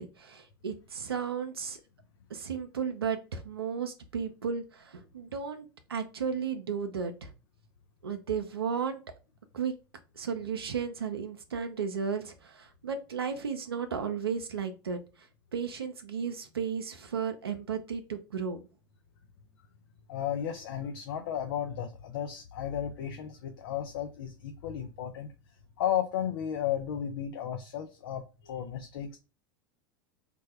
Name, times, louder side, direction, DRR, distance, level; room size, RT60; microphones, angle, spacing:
voice 1, 0.0-1.8 2.3-7.3 8.0-9.0 9.5-9.7 10.2-15.0 15.5-18.6, right 6 dB, 90° right, 0.4 m, -34 dB
voice 2, 20.1-25.3 25.8-29.2, left 9 dB, 70° left, 0.4 m, -34 dB
3.3 x 2.2 x 3.2 m
hypercardioid pair, 85°, 12 cm